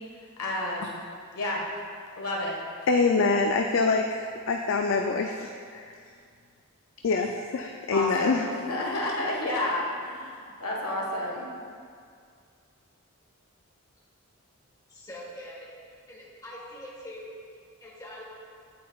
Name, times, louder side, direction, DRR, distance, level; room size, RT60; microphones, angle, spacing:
voice 1, 0.4-1.0 1.3-1.7 2.2-2.6 7.9-11.5, left 1 dB, 85° left, -2 dB, 1.4 m, -30 dB
voice 2, 2.9-5.9 7.0-8.5, left 4 dB, 60° left, 3 dB, 0.4 m, -25 dB
voice 3, 14.9-15.7 16.1-17.3 17.8-18.2, left 1 dB, 15° left, -6 dB, 1.3 m, -43 dB
8.6 x 8.4 x 2.3 m, 2.2 s
head